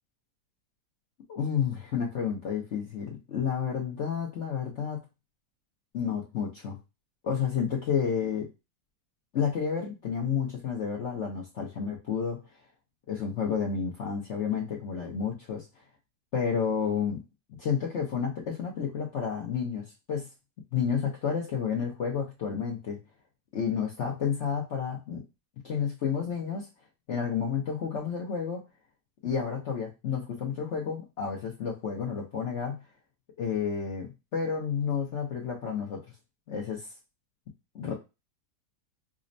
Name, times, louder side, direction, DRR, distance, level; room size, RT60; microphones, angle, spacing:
voice 1, 1.3-5.0 5.9-6.8 7.2-8.5 9.3-12.4 13.1-15.8 16.3-17.2 17.6-20.3 20.7-23.0 23.5-25.2 25.6-26.7 27.1-28.6 29.2-32.8 33.4-36.0 36.5-36.9 37.7-37.9, left 7 dB, 55° left, -2 dB, 0.8 m, -30 dB
5.0 x 2.1 x 2.5 m, 0.26 s
omnidirectional pair, 1.8 m